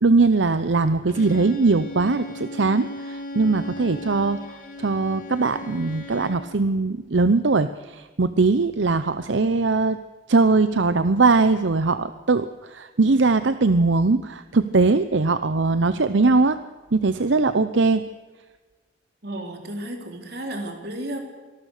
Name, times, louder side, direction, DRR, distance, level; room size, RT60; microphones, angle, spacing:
voice 1, 0.0-10.0 10.3-16.6 16.9-18.0, right 3 dB, 80° right, 12 dB, 0.8 m, -20 dB
Bowed string instrument, 1.1-6.5, left 1 dB, 45° left, 3.0 m, -37 dB
voice 2, 19.2-21.2, right 1 dB, 55° right, 4 dB, 3.8 m, -33 dB
25.5 x 18.5 x 6.7 m, 1.3 s
head